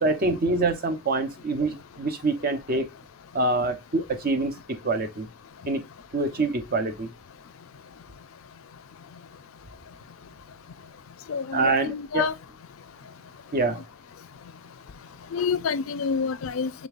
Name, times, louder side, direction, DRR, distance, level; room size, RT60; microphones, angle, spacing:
voice 1, 0.0-2.9 3.3-5.3 5.7-5.8 6.1-7.1 11.5-12.3 13.5-13.8, right 3 dB, 45° right, 0.8 m, -25 dB
voice 2, 11.3-12.3 15.3-16.9, left 5 dB, 75° left, 0.4 m, -28 dB
5.3 x 3.5 x 2.4 m
head